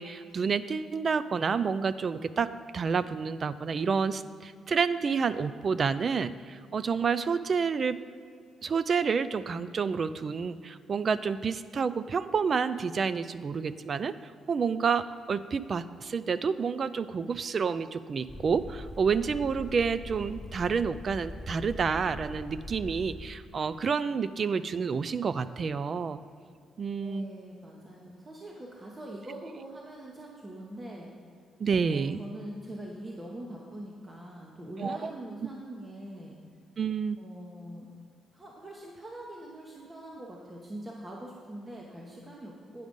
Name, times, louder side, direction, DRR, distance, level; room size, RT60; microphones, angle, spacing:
voice 1, 0.0-8.0 8.6-14.2 14.5-26.2 26.8-27.3 31.6-32.2 34.8-35.1 36.8-37.2, right 5 dB, 45° right, 14 dB, 0.3 m, -29 dB
sound 1, 18.3-23.3, left 2 dB, 25° left, 0.5 m, -42 dB
voice 2, 26.9-31.1 31.9-36.4 37.2-37.9 38.3-42.9, right 1 dB, 25° right, -2 dB, 1.0 m, -43 dB
9.3 x 5.0 x 5.3 m, 2.3 s
cardioid pair, 90°, 0 cm